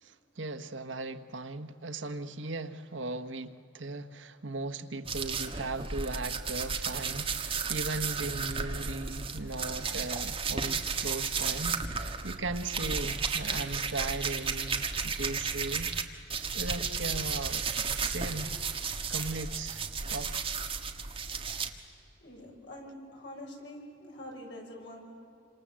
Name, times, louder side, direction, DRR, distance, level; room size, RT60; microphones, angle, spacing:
voice 1, 0.0-15.9 16.5-17.6 18.0-18.6 19.1-20.3, right 2 dB, 85° right, 1.3 m, -38 dB
sound 1, 5.1-16.0 16.3-21.7, right 5 dB, 30° right, 1.6 m, -33 dB
voice 2, 22.2-25.0, left 1 dB, 70° left, 7.0 m, -45 dB
28.0 x 26.5 x 7.6 m
head